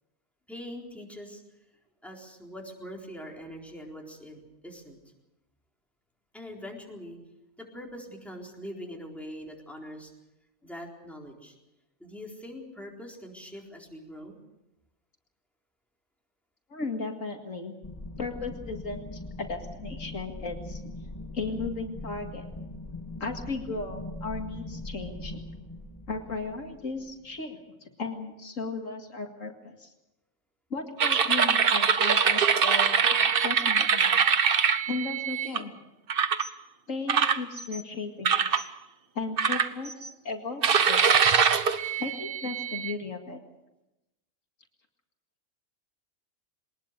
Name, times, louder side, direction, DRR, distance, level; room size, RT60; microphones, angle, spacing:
voice 1, 0.5-1.4 2.0-5.0 6.3-7.2 7.6-10.1 10.6-11.6 12.0-14.4, equal, ahead, -1 dB, 4.1 m, -43 dB
voice 2, 16.7-17.7 18.2-20.8 21.3-22.4 23.2-25.4 26.1-29.9 30.7-34.3 34.9-35.7 36.9-38.6 39.1-41.3 42.0-43.4, left 3 dB, 75° left, 3 dB, 2.4 m, -36 dB
sound 1, 17.8-27.1, left 2 dB, 20° left, 2.3 m, -41 dB
sound 2, 31.0-35.6 36.1-36.5 37.1-37.8 38.3-38.6 39.4-40.1 40.6-42.9, right 6 dB, 50° right, 1.1 m, -23 dB
22.0 x 20.0 x 6.7 m, 0.95 s
omnidirectional pair, 1.4 m